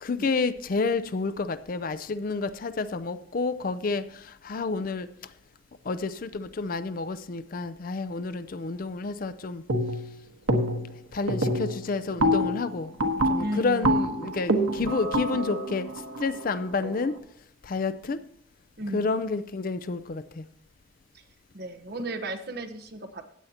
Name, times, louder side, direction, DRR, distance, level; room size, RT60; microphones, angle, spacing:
voice 1, 0.0-4.0 4.4-5.1 5.9-9.6 11.1-12.9 13.3-15.9 16.2-17.1 17.6-18.2 18.9-20.4, left 4 dB, 45° left, 12 dB, 0.4 m, -29 dB
sound 1, 9.7-10.1 10.5-11.0 11.3-17.1, equal, 90° right, 1.3 m, -26 dB
voice 2, 13.4-14.0 14.3-14.5 18.8-19.1 21.5-23.3, right 1 dB, 50° right, 7 dB, 1.0 m, -35 dB
15.5 x 9.2 x 2.9 m, 0.69 s
head